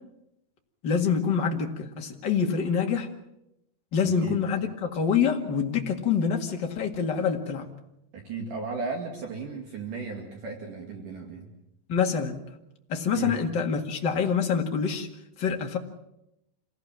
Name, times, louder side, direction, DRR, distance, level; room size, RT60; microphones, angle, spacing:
voice 1, 0.8-3.1 3.9-7.7 11.9-12.4 12.9-15.1 15.4-15.8, left 6 dB, 40° left, 2 dB, 1.8 m, -26 dB
voice 2, 4.0-4.5 8.1-11.5 13.2-13.4, right 4 dB, 55° right, 1 dB, 3.6 m, -35 dB
27.0 x 18.0 x 7.6 m, 0.85 s
omnidirectional pair, 4.8 m